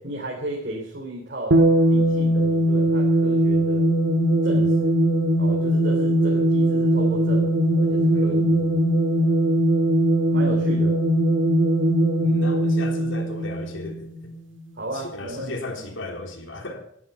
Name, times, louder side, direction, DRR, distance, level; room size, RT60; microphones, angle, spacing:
voice 1, 0.0-3.9 4.4-5.0 5.4-8.3 9.2-9.4 10.3-11.0 14.8-16.0, right 1 dB, 55° right, -1 dB, 3.4 m, -34 dB
sound 1, 1.5-14.3, right 1 dB, 80° right, 1.7 m, -20 dB
voice 2, 8.1-8.8 12.2-14.3 14.9-16.9, left 2 dB, 80° left, 2 dB, 3.4 m, -36 dB
19.0 x 11.0 x 5.5 m, 0.68 s
head